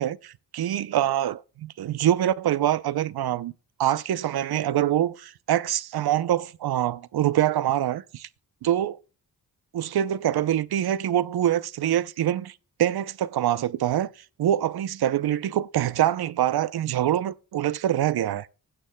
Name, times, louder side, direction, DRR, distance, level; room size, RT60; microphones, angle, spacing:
voice 1, 0.0-3.5 3.8-8.3 8.6-9.0 9.7-14.1 14.4-18.5, right 11 dB, 65° right, 0.6 m, -25 dB
16.5 x 8.8 x 2.2 m
supercardioid pair, 45°, 41 cm